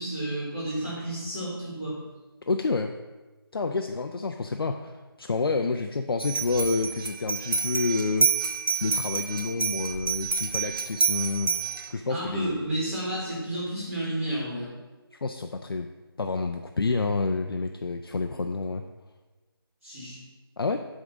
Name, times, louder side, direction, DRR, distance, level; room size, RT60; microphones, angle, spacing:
voice 1, 0.0-2.0 12.1-14.7 19.8-20.2, right 1 dB, 30° right, -7 dB, 2.1 m, -31 dB
voice 2, 2.5-2.9 3.5-8.3 8.8-12.7 15.1-15.9 16.2-18.8 20.6-20.9, left 3 dB, 70° left, 5 dB, 0.5 m, -29 dB
sound 1, 6.2-11.9, right 5 dB, 60° right, 1.0 m, -28 dB
8.6 x 3.7 x 6.2 m, 1.2 s
figure-of-eight pair, 175°, 13 cm